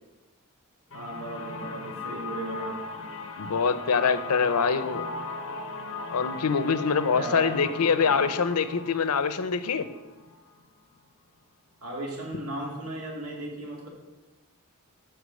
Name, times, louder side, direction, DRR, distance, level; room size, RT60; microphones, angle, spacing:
sound 1, 0.9-10.6, left 3 dB, 60° left, 1.0 m, -37 dB
voice 1, 0.9-2.8 7.1-7.5 11.8-13.9, right 1 dB, 80° right, -1 dB, 2.5 m, -36 dB
voice 2, 3.4-5.0 6.1-9.9, left 5 dB, 90° left, 12 dB, 0.7 m, -24 dB
8.1 x 6.0 x 6.4 m, 1.1 s
head